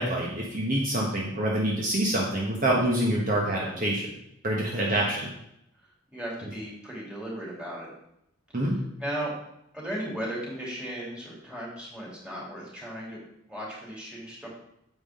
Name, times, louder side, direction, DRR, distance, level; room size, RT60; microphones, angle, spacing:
voice 1, 0.0-4.1 4.4-5.3 8.5-8.8, right 1 dB, 40° right, -2 dB, 1.4 m, -26 dB
voice 2, 3.4-3.8 4.8-5.0 6.1-7.9 9.0-9.3 9.7-13.2 13.5-14.5, right 1 dB, 5° right, -5 dB, 3.3 m, -36 dB
9.5 x 7.5 x 3.8 m, 0.77 s
head